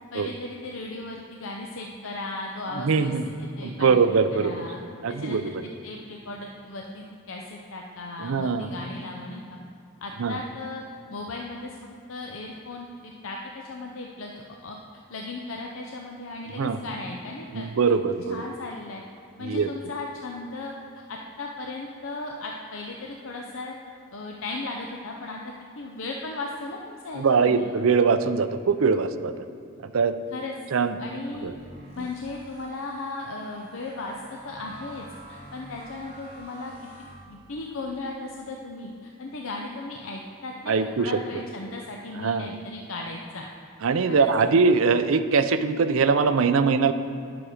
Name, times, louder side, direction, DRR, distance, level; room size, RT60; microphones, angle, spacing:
voice 1, 0.1-3.1 3.4-4.8 5.1-9.6 10.0-10.8 11.1-11.8 12.1-14.8 15.1-17.7 18.3-19.0 19.4-20.7 21.1-23.7 24.1-25.4 25.8-27.7 30.3-30.5 31.0-31.5 31.9-36.7 37.3-43.5 44.1-44.5, left 2 dB, 70° left, 0 dB, 0.6 m, -36 dB
voice 2, 2.7-3.2 3.6-4.5 5.0-5.6 8.2-8.7 10.2-10.4 16.5-16.8 17.5-18.4 19.4-19.7 27.1-29.3 29.8-30.2 30.7-30.9 31.4-31.5 32.0-32.1 40.7-41.2 42.2-42.5 43.8-46.9, right 5 dB, 75° right, 11 dB, 0.5 m, -22 dB
sound 1, 31.3-37.8, right 1 dB, 50° right, 2.2 m, -48 dB
9.9 x 6.2 x 4.9 m, 2.5 s
head